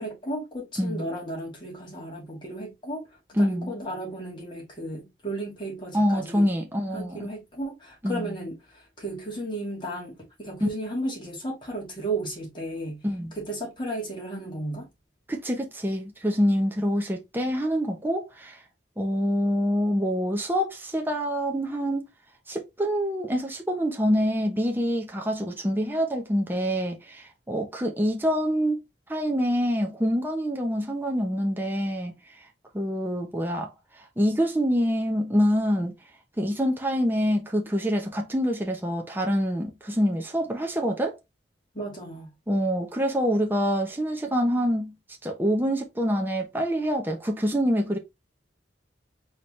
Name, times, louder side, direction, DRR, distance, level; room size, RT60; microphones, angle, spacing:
voice 1, 0.0-3.0 3.3-6.5 6.9-13.0 13.4-14.9 41.7-42.3, right 1 dB, 25° left, 2.2 m, -34 dB
voice 2, 3.4-3.7 5.9-7.2 8.0-8.3 10.6-10.7 13.0-13.3 15.3-18.6 19.0-22.1 22.5-28.8 29.1-32.2 32.7-33.7 34.2-35.9 36.4-41.1 42.5-44.9 45.2-48.0, equal, 10° right, 0.8 m, -26 dB
4.3 x 3.4 x 3.1 m
head